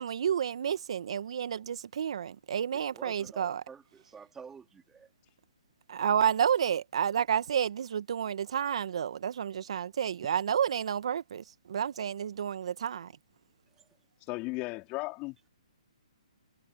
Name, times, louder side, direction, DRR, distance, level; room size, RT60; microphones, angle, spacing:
voice 1, 0.0-3.6 5.9-13.1, right 8 dB, 60° right, 1.8 m, -30 dB
voice 2, 2.7-5.1 10.2-10.3, right 6 dB, 10° right, 3.4 m, -49 dB
voice 3, 14.3-15.5, left 24 dB, 30° left, 4.0 m, -36 dB
hypercardioid pair, 140°, 4 cm